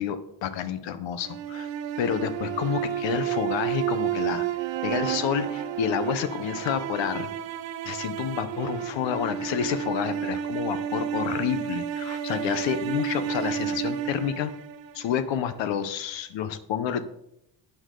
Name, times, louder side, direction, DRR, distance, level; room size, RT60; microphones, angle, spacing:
voice 1, 0.0-1.7 2.0-4.5 4.8-7.3 7.8-14.5 14.9-17.1, left 8 dB, 90° left, 12 dB, 1.1 m, -29 dB
sound 1, 1.2-15.4, right 10 dB, 85° right, 1.0 m, -31 dB
11.5 x 9.0 x 3.9 m, 0.77 s
cardioid pair, 150°, 43 cm